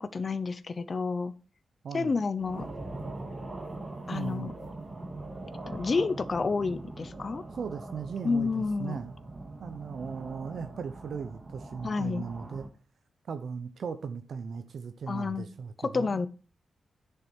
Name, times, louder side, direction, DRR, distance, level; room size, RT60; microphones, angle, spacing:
voice 1, 0.0-1.3 1.9-2.7 4.1-4.5 5.7-7.4 8.2-9.0 11.8-12.3 15.1-15.4 15.9-16.3, left 4 dB, 35° left, 0.7 m, -29 dB
voice 2, 1.8-2.2 4.1-4.5 7.6-9.1 9.6-12.7 13.3-16.2, right 6 dB, 65° right, 0.8 m, -37 dB
sound 1, 2.4-12.7, right 2 dB, 30° right, 2.0 m, -42 dB
10.5 x 6.9 x 4.5 m
wide cardioid pair, 130°, 0 cm